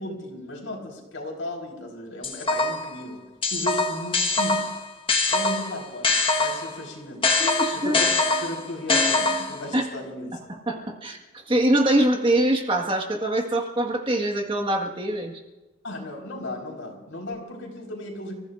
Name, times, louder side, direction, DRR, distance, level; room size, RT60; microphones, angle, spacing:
voice 1, 0.0-3.2 3.5-4.6 5.3-7.3 7.7-10.4 10.7-10.8 15.8-18.3, left 1 dB, 85° left, 0 dB, 4.5 m, -35 dB
sound 1, 2.2-2.9 3.4-6.8 7.2-9.7, left 3 dB, 25° left, 1.4 m, -23 dB
voice 2, 7.4-7.9 9.7-9.8 10.7-11.2 11.5-15.3, right 1 dB, 25° right, 2 dB, 1.7 m, -23 dB
30.0 x 15.5 x 2.6 m, 1.1 s
head